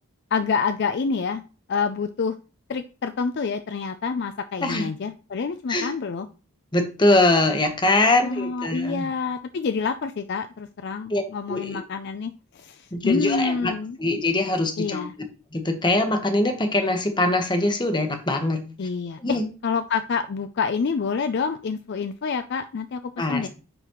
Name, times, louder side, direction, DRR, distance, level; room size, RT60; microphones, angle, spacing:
voice 1, 0.3-1.4 1.7-2.3 2.7-6.3 8.2-14.0 14.8-15.1 18.8-19.4 19.6-23.0 23.3-23.5, left 5 dB, 50° left, 10 dB, 0.4 m, -27 dB
voice 2, 6.7-9.1 11.1-11.2 11.5-11.8 12.9-13.7 14.0-15.1 15.5-18.7 19.2-19.4 23.2-23.5, left 2 dB, 20° left, 6 dB, 1.0 m, -22 dB
9.9 x 4.0 x 3.0 m, 0.34 s
head